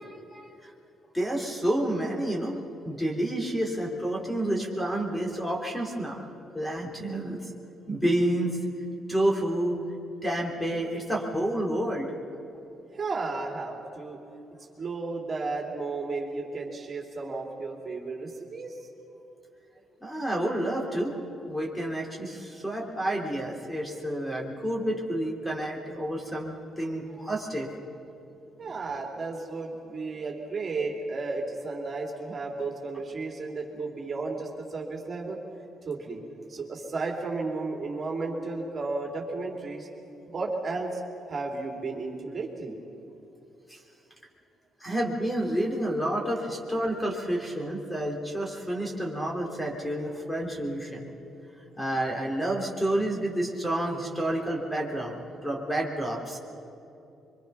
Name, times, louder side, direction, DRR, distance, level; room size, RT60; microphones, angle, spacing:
voice 1, 0.0-0.7 1.1-6.2 6.5-7.5 7.9-8.6 9.1-9.8 10.2-12.1 20.0-21.1 21.5-27.7 43.7-43.8 44.8-51.1 51.8-56.4, right 1 dB, 10° left, 0 dB, 3.4 m, -29 dB
voice 2, 12.9-14.2 14.8-18.8 28.6-35.4 35.8-36.2 36.5-39.9 40.3-41.0 41.3-42.8, right 3 dB, 40° right, 0 dB, 3.3 m, -33 dB
24.0 x 23.5 x 5.8 m, 2.8 s
cardioid pair, 90°, 0 cm